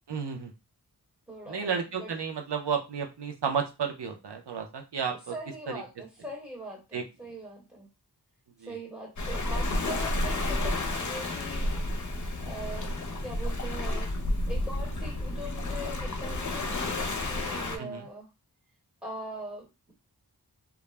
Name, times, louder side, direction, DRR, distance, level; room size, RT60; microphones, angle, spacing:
voice 1, 0.1-0.5 1.5-5.3 6.9-7.0 8.6-8.8 17.8-18.1, right 6 dB, 85° right, 4 dB, 0.6 m, -32 dB
voice 2, 1.3-2.1 5.3-7.9 8.7-11.7 12.4-12.9 13.2-14.1 14.5-18.3 19.0-19.9, right 1 dB, 5° right, -4 dB, 1.0 m, -41 dB
Waves surf, 9.2-17.8, left 1 dB, 50° left, 0.6 m, -31 dB
2.3 x 2.0 x 3.1 m, 0.26 s
wide cardioid pair, 55°, 40 cm